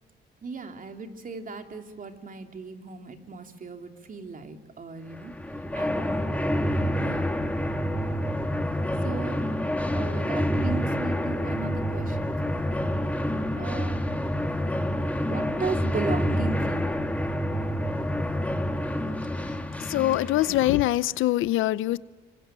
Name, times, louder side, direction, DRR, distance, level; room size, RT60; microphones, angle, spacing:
voice 1, 0.4-5.3 5.7-6.3 7.0-7.3 9.0-9.4 9.9-12.6 13.6-14.0 15.3-17.0, right 4 dB, 45° right, 3.1 m, -36 dB
sound 1, 5.1-20.9, equal, 5° left, 2.5 m, -28 dB
voice 2, 19.8-22.0, left 15 dB, 90° left, 0.7 m, -23 dB
26.5 x 24.5 x 9.1 m
cardioid pair, 90°, 20 cm